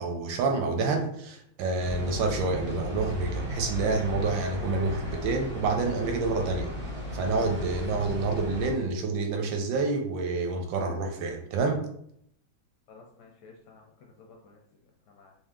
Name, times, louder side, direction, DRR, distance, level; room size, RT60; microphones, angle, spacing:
voice 1, 0.0-6.7 7.1-11.8, right 3 dB, 75° right, 3 dB, 1.3 m, -28 dB
sound 1, 1.8-8.7, equal, 15° right, 0.4 m, -35 dB
voice 2, 12.9-14.6 15.1-15.3, left 4 dB, 75° left, 1 dB, 1.0 m, -53 dB
3.4 x 2.7 x 3.5 m, 0.71 s
omnidirectional pair, 2.2 m